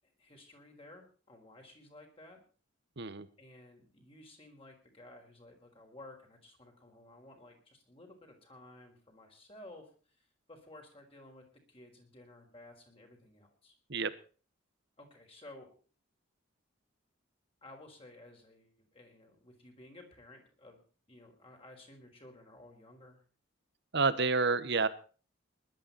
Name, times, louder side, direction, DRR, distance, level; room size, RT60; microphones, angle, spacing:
voice 1, 0.0-2.4 3.4-13.7 15.0-15.7 17.6-20.8 21.1-23.2, left 1 dB, 30° left, 3 dB, 4.9 m, -55 dB
voice 2, 3.0-3.3 13.9-14.1 23.9-24.9, right 4 dB, 60° right, 15 dB, 1.3 m, -29 dB
20.5 x 12.0 x 4.2 m, 0.38 s
head